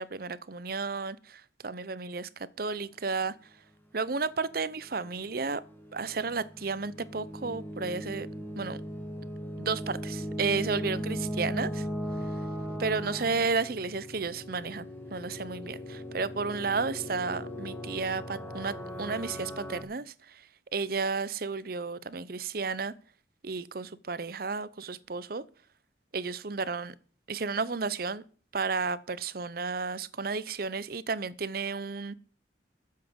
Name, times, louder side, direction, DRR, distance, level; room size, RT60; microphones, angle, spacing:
voice 1, 0.0-3.3 3.9-5.6 5.9-8.3 8.6-8.8 9.6-11.9 12.8-14.9 15.1-20.4 20.7-22.9 23.4-25.4 26.1-26.9 27.3-28.2 28.5-32.1, right 4 dB, 50° right, 0.7 m, -32 dB
sound 1, 4.9-19.8, equal, 10° left, 2.0 m, -38 dB
12.5 x 7.6 x 7.8 m
head